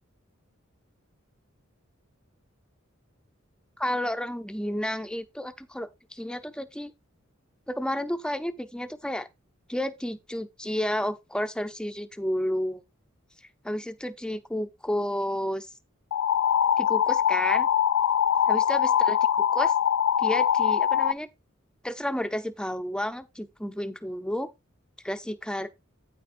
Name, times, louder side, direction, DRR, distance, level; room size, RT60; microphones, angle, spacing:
voice 1, 3.8-6.9 7.7-9.3 9.7-12.8 13.6-15.7 16.8-17.7 18.5-19.7 20.2-21.3 21.8-24.5 25.0-25.7, left 1 dB, 5° left, 0.6 m, -31 dB
sound 1, 16.1-21.1, left 9 dB, 70° left, 0.4 m, -23 dB
9.2 x 8.3 x 2.6 m
head